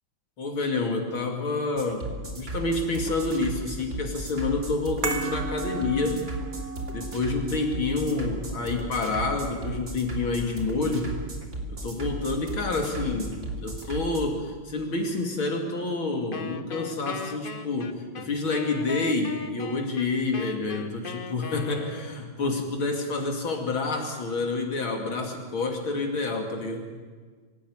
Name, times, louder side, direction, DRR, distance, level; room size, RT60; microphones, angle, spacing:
voice 1, 0.4-6.3 6.9-11.1 11.7-26.9, left 3 dB, 65° left, 2 dB, 3.3 m, -28 dB
sound 1, 1.8-14.2, right 1 dB, 30° right, 3.2 m, -35 dB
sound 2, 5.0-11.4 11.7-11.9, right 4 dB, 65° right, 2.5 m, -38 dB
Wind instrument woodwind instrument, 16.3-22.3, left 6 dB, 45° left, 0.7 m, -38 dB
25.5 x 16.5 x 9.5 m, 1.5 s
omnidirectional pair, 2.4 m